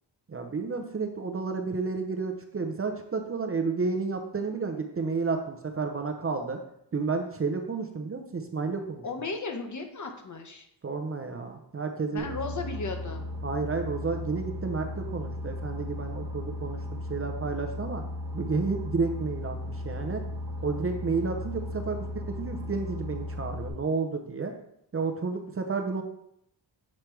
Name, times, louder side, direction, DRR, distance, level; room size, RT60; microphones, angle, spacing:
voice 1, 0.3-6.6 6.9-9.0 10.8-12.3 13.4-18.0 18.3-20.2 20.6-22.0 22.3-24.5 24.9-26.0, right 4 dB, 30° right, 4 dB, 0.6 m, -31 dB
voice 2, 9.0-10.7 12.1-13.2, left 3 dB, 45° left, 4 dB, 0.9 m, -35 dB
Boat Water vehicle, 12.2-23.7, left 1 dB, 60° right, 1.0 m, -36 dB
7.3 x 3.3 x 4.5 m, 0.74 s
wide cardioid pair, 125°, 42 cm